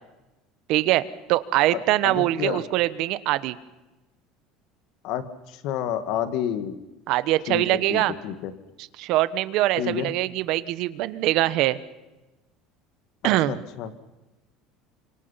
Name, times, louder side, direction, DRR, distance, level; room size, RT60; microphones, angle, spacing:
voice 1, 0.7-3.6 7.1-8.1 9.0-11.8 13.2-13.6, right 16 dB, 55° right, 15 dB, 1.1 m, -23 dB
voice 2, 1.7-2.6 5.0-5.2 5.5-6.8 7.5-8.5 9.8-10.1 13.5-14.0, left 10 dB, 55° left, 11 dB, 1.9 m, -29 dB
28.5 x 26.0 x 5.8 m, 1.1 s
cardioid pair, 165°, 0 cm